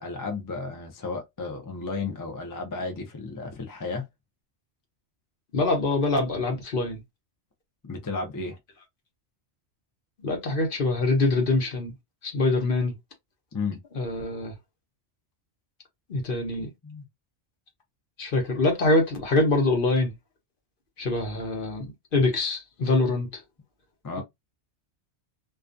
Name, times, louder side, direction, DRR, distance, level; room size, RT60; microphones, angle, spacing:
voice 1, 0.0-4.0 7.8-8.6 13.5-13.8 16.8-17.0 24.0-24.2, left 4 dB, 30° left, 0.4 m, -33 dB
voice 2, 5.5-7.0 10.2-11.9 12.2-12.9 13.9-14.5 16.1-16.7 18.2-20.1 21.0-21.9 22.1-23.4 24.2-24.3, left 2 dB, 55° left, 0.9 m, -24 dB
2.4 x 2.3 x 2.5 m
omnidirectional pair, 1.2 m